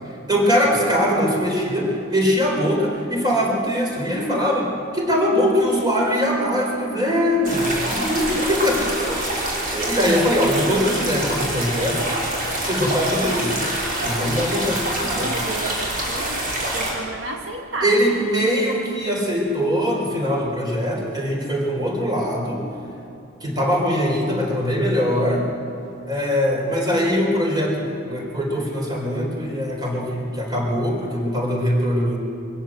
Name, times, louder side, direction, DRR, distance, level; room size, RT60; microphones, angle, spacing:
voice 1, 0.3-12.1 12.6-13.5 14.0-15.3 17.8-22.6 23.4-25.5 26.1-32.2, equal, 20° right, -1 dB, 4.5 m, -22 dB
sound 1, 7.4-16.9, right 1 dB, 45° right, 5.9 m, -26 dB
voice 2, 15.1-16.4 16.7-18.3, right 2 dB, 75° right, 2 dB, 1.9 m, -31 dB
24.0 x 16.5 x 7.8 m, 2.9 s
head